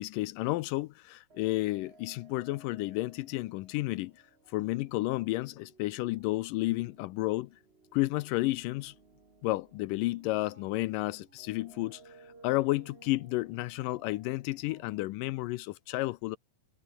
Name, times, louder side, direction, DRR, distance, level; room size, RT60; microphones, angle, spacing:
voice 1, 0.0-4.1 4.5-7.5 7.9-8.9 9.4-12.1 12.4-16.4, left 19 dB, 85° left, 2.0 m, -31 dB
sound 1, 1.3-15.0, right 3 dB, 20° right, 1.8 m, -59 dB
omnidirectional pair, 4.4 m